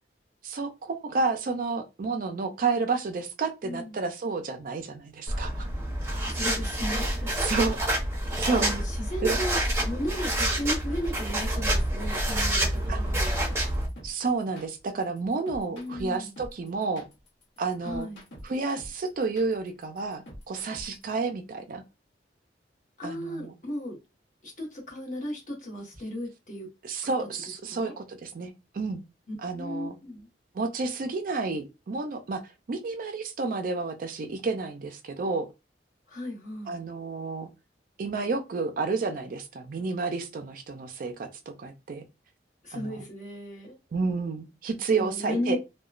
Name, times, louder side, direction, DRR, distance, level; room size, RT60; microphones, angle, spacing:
voice 1, 0.4-5.7 7.4-7.8 8.4-8.7 9.2-9.4 12.9-13.0 14.0-17.1 17.6-18.1 18.4-21.8 23.0-23.5 26.8-29.0 29.4-29.9 30.5-35.5 36.7-37.5 38.0-42.0 42.7-43.0 43.9-45.6, right 4 dB, 50° right, 0.4 m, -30 dB
voice 2, 3.6-4.0 6.3-7.7 8.5-9.6 9.8-13.3 15.7-16.4 17.8-18.2 23.0-24.0 24.4-26.7 27.7-27.9 29.3-30.3 36.1-36.8 42.6-43.8 44.9-45.6, equal, 45° left, 1.1 m, -35 dB
sound 1, 5.3-13.9, right 1 dB, 15° right, 0.7 m, -28 dB
sound 2, 11.6-21.1, equal, 75° left, 0.8 m, -46 dB
2.8 x 2.2 x 2.3 m
head